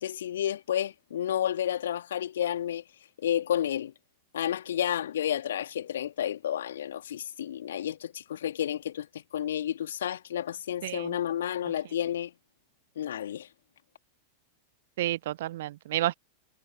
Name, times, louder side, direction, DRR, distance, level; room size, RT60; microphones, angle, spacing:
voice 1, 0.0-2.8 3.2-3.9 4.3-9.1 9.3-12.3 13.0-13.5, left 10 dB, 60° left, 2.7 m, -31 dB
voice 2, 10.8-11.1 15.0-16.1, right 14 dB, 55° right, 0.3 m, -30 dB
figure-of-eight pair, 90°, 0 cm